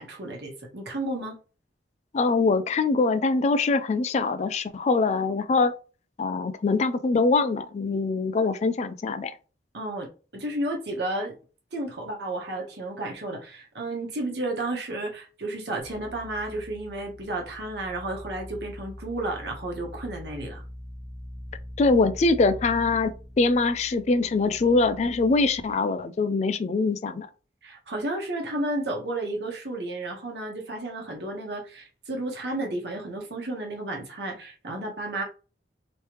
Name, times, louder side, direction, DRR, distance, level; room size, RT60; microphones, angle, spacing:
voice 1, 0.0-1.3 9.7-11.3 11.7-20.6 27.6-35.2, right 2 dB, 70° right, 1.2 m, -32 dB
voice 2, 2.1-5.7 6.2-9.3 21.8-27.3, left 3 dB, 40° left, 0.3 m, -23 dB
sound 1, 15.8-25.7, left 1 dB, 5° right, 1.0 m, -43 dB
3.2 x 3.1 x 3.0 m
head